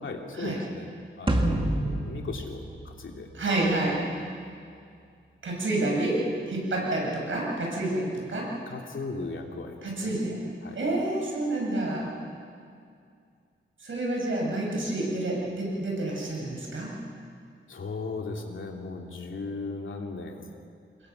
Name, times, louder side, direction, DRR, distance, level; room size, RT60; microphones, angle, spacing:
voice 1, 0.0-0.9 1.2-3.3 8.7-10.1 10.6-10.8 17.7-20.5, left 3 dB, 75° left, 1 dB, 2.7 m, -37 dB
sound 1, 1.3-3.7, right 1 dB, 25° right, 2.1 m, -28 dB
voice 2, 3.3-4.0 5.4-8.5 9.8-10.4 10.7-12.1 13.8-17.0, right 2 dB, 75° right, -2 dB, 6.8 m, -29 dB
27.0 x 21.0 x 5.9 m, 2.3 s
wide cardioid pair, 100°, 20 cm